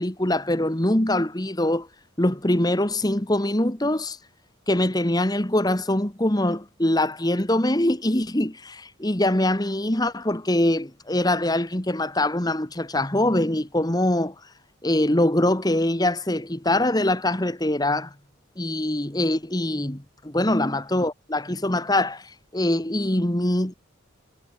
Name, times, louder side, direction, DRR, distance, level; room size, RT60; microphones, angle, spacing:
voice 1, 0.0-1.9 2.2-4.2 4.7-14.3 14.8-18.1 18.6-23.7, left 1 dB, 20° left, 1.6 m, -23 dB
head